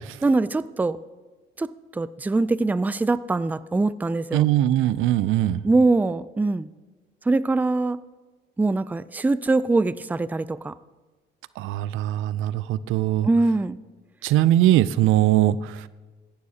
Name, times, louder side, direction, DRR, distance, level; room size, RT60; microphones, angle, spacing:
voice 1, 0.2-1.0 1.6-4.5 5.6-6.7 7.3-8.0 8.6-10.7 13.2-13.8, right 3 dB, 10° right, 16 dB, 0.3 m, -23 dB
voice 2, 4.3-5.6 11.6-13.3 14.2-15.9, right 13 dB, 90° right, 17 dB, 0.4 m, -21 dB
16.5 x 11.5 x 2.8 m, 1.2 s
cardioid pair, 90°, 20 cm